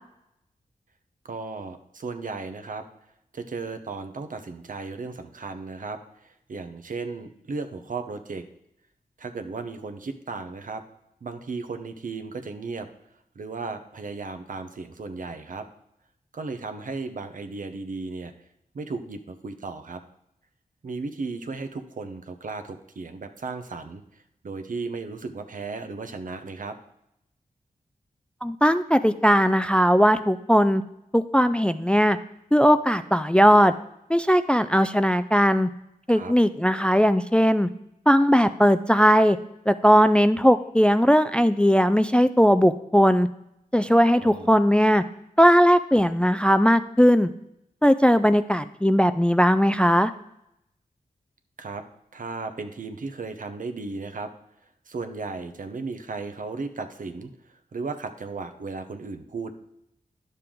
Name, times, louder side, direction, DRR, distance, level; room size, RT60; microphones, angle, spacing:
voice 1, 1.2-2.8 3.3-8.4 9.2-10.8 11.2-12.9 13.3-15.7 16.3-18.3 18.7-20.0 20.8-26.8 36.1-36.3 44.1-44.5 51.6-51.8 52.1-54.3 54.9-59.5, right 4 dB, 65° right, 8 dB, 0.9 m, -35 dB
voice 2, 28.4-30.8 31.1-32.2 32.5-33.7 34.1-35.7 36.1-37.7 38.1-39.4 39.7-43.3 43.7-45.0 45.4-47.3 47.8-50.1, equal, 5° left, 11 dB, 0.3 m, -19 dB
10.5 x 6.7 x 3.8 m, 0.80 s
wide cardioid pair, 80°, 15 cm